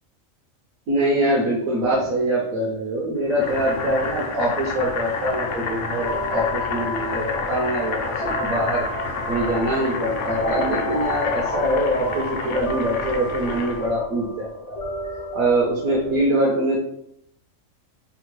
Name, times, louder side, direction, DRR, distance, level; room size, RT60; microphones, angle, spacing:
voice 1, 0.9-8.9 9.3-14.8 15.3-16.8, right 1 dB, 75° right, -4 dB, 1.1 m, -23 dB
Boiling, 3.3-13.9, left 4 dB, 70° left, 0.9 m, -30 dB
sound 1, 5.2-16.2, left 2 dB, 45° left, 0.5 m, -32 dB
4.4 x 2.1 x 3.0 m, 0.74 s
omnidirectional pair, 1.4 m